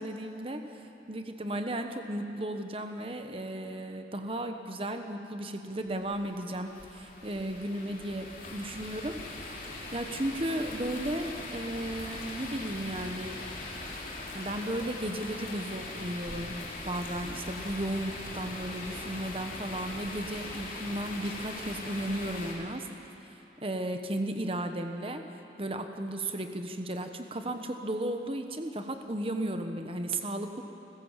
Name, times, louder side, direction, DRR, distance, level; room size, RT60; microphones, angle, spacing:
voice 1, 0.0-13.4 14.3-16.6 16.8-22.9 23.3-25.2 25.6-30.6, right 1 dB, 30° right, 6 dB, 1.1 m, -35 dB
sound 1, 5.9-22.5, left 2 dB, 50° left, 3.5 m, -41 dB
29.5 x 15.5 x 7.4 m, 2.9 s
head